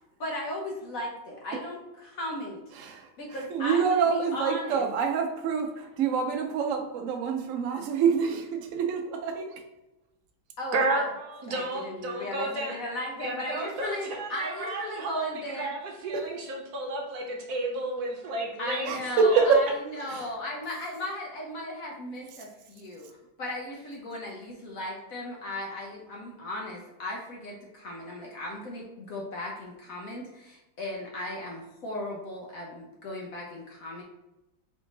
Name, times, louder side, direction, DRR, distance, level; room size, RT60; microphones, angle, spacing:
voice 1, 0.2-2.6 3.2-4.8 10.6-11.0 11.5-15.7 18.6-34.0, left 1 dB, 60° left, -2 dB, 1.0 m, -36 dB
voice 2, 2.7-9.6 16.1-16.2 18.9-19.6 20.0-20.3, right 6 dB, 85° right, 4 dB, 0.7 m, -26 dB
voice 3, 10.7-12.8 13.2-18.9 19.3-19.4, right 2 dB, 60° right, 1 dB, 1.1 m, -32 dB
3.6 x 3.6 x 3.9 m, 0.99 s
omnidirectional pair, 2.2 m